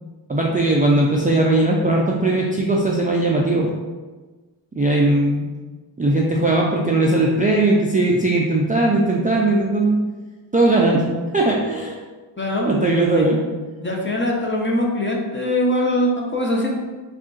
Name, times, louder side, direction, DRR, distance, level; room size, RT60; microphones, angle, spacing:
voice 1, 0.3-3.7 4.8-5.5 6.0-10.0 10.5-11.1 11.3-12.0 12.7-13.4, right 2 dB, 20° right, -2 dB, 0.3 m, -18 dB
voice 2, 12.4-12.7 13.1-13.4 13.8-16.7, left 1 dB, 25° left, -2 dB, 0.7 m, -22 dB
3.6 x 2.4 x 3.8 m, 1.3 s
wide cardioid pair, 85°, 48 cm